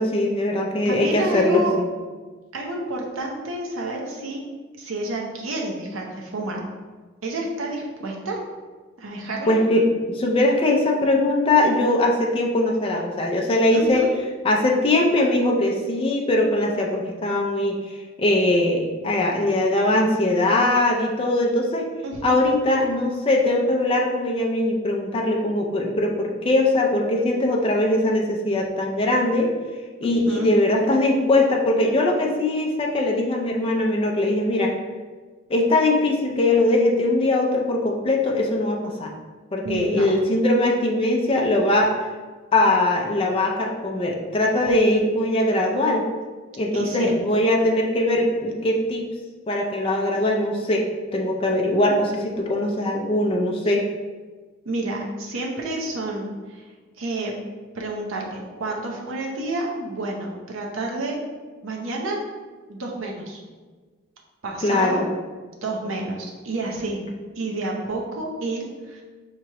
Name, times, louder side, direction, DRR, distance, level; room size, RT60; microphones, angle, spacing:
voice 1, 0.0-1.9 9.5-14.0 14.4-17.8 18.2-21.9 22.2-29.5 30.0-34.7 35.5-39.1 39.5-41.9 42.5-46.0 46.6-49.0 49.5-50.8 51.1-53.8 64.6-65.1, left 1 dB, 30° left, 0 dB, 0.4 m, -21 dB
voice 2, 0.8-1.7 2.5-4.4 4.8-6.6 7.2-8.4 9.0-9.6 13.7-14.1 22.0-22.4 30.0-30.5 39.6-40.1 46.7-47.1 54.6-56.7 57.0-57.3 57.7-61.2 61.6-62.2 62.7-63.4 64.4-65.0 65.6-67.0 67.4-69.0, right 2 dB, 80° right, 0 dB, 0.7 m, -29 dB
4.6 x 2.9 x 2.9 m, 1.4 s
head